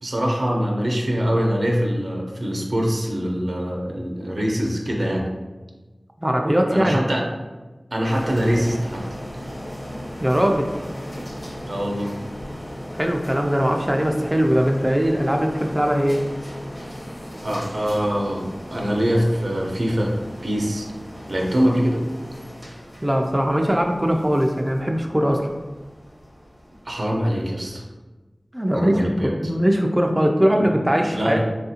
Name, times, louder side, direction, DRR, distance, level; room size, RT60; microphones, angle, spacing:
voice 1, 0.0-5.3 6.7-7.3 7.9-9.1 11.6-12.1 17.4-20.1 20.4-20.9 21.3-22.0 26.8-27.8 28.7-29.5 30.5-30.8 31.1-31.4, equal, 75° right, -1 dB, 0.5 m, -23 dB
voice 2, 6.2-7.0 10.2-10.7 12.9-16.2 23.0-25.5 28.5-31.4, equal, 20° right, 2 dB, 0.3 m, -20 dB
sound 1, 8.1-27.8, equal, 30° left, 0.8 m, -37 dB
3.5 x 2.4 x 2.7 m, 1.2 s
wide cardioid pair, 50°, 0 cm